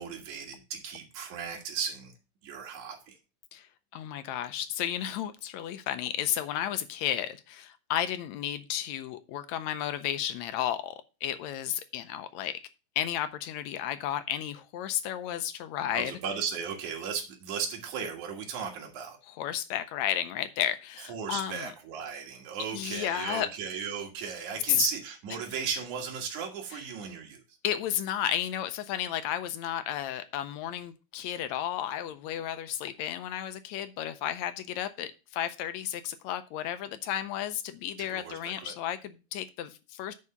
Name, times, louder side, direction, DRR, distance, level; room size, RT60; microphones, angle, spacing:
voice 1, 0.0-2.1 2.4-3.2 15.9-19.2 21.1-27.6 38.0-38.7, right 6 dB, 75° right, 0 dB, 3.0 m, -36 dB
voice 2, 3.9-11.0 11.2-12.6 13.0-16.1 19.4-21.7 22.7-23.5 24.7-24.8 27.6-40.1, left 11 dB, 75° left, 11 dB, 1.8 m, -33 dB
9.6 x 4.8 x 5.5 m, 0.31 s
omnidirectional pair, 3.5 m